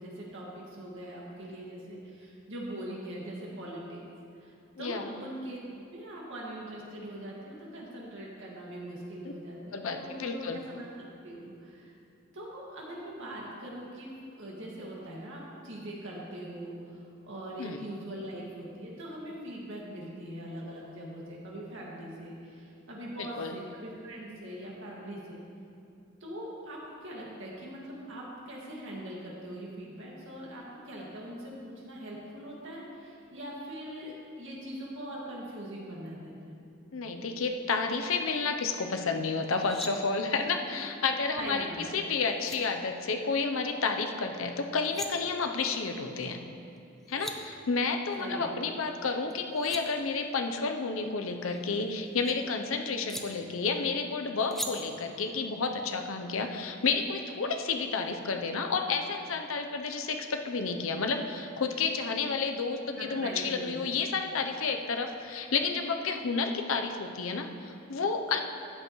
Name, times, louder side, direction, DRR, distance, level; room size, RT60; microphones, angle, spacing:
voice 1, 0.0-4.0 4.4-5.6 5.9-11.9 12.3-14.1 14.4-25.4 26.2-36.6 40.5-40.6 41.4-42.1 48.2-48.6 62.9-63.9, right 1 dB, 65° right, -4 dB, 2.0 m, -42 dB
voice 2, 4.8-5.1 9.7-10.6 17.6-17.8 23.2-23.6 36.9-41.6 41.9-46.4 47.1-68.4, left 4 dB, 70° left, 5 dB, 0.7 m, -31 dB
sound 1, 39.4-39.9 42.0-42.1 42.4-42.6 44.6-45.1 46.8-46.9 47.0-47.4 49.3-49.8 51.3-52.3 53.1-53.2 54.5-54.7, equal, ahead, 0.5 m, -40 dB
13.5 x 7.8 x 3.1 m, 2.6 s
head